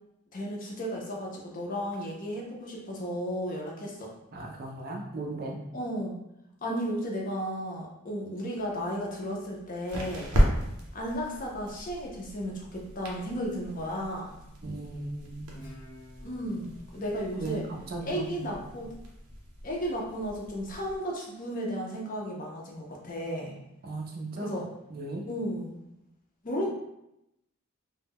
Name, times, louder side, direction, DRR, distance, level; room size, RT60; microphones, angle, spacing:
voice 1, 0.3-4.1 5.7-6.1 6.6-10.3 10.9-14.4 16.2-17.7 18.0-18.9 19.6-23.6 24.4-24.7 25.3-25.8 26.4-26.7, equal, 35° left, -1 dB, 0.5 m, -34 dB
voice 2, 4.3-5.6 14.6-15.5 17.4-18.6 23.8-24.6 24.9-25.2, right 2 dB, 40° right, 1 dB, 0.4 m, -37 dB
sound 1, 8.6-21.0, equal, 80° right, 0.6 m, -35 dB
Guitar, 15.5-18.8, equal, 65° left, 0.7 m, -53 dB
2.1 x 2.0 x 3.4 m, 0.85 s
head